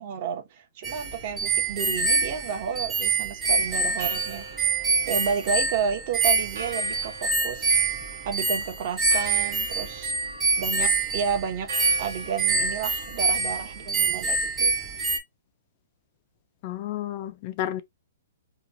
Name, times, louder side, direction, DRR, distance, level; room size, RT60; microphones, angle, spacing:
voice 1, 0.0-4.5 5.0-7.8 8.2-10.1 10.6-11.7 12.0-14.7, right 7 dB, 40° right, 0.8 m, -31 dB
sound 1, 0.8-15.2, right 3 dB, 10° right, 0.6 m, -26 dB
Church bell, 3.7-13.9, right 3 dB, 85° right, 1.0 m, -42 dB
voice 2, 16.6-17.8, left 12 dB, 35° left, 0.3 m, -31 dB
2.9 x 2.2 x 2.5 m
hypercardioid pair, 155°, 0 cm